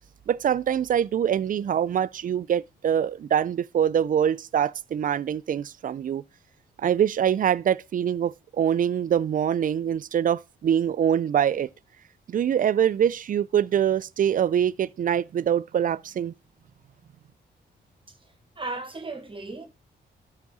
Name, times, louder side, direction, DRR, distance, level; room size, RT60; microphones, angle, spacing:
voice 1, 0.3-6.2 6.8-11.7 12.3-16.3, right 9 dB, 50° right, 0.4 m, -24 dB
voice 2, 18.1-19.6, right 3 dB, 30° right, 1.5 m, -36 dB
12.0 x 4.8 x 4.1 m
cardioid pair, 75°, 18 cm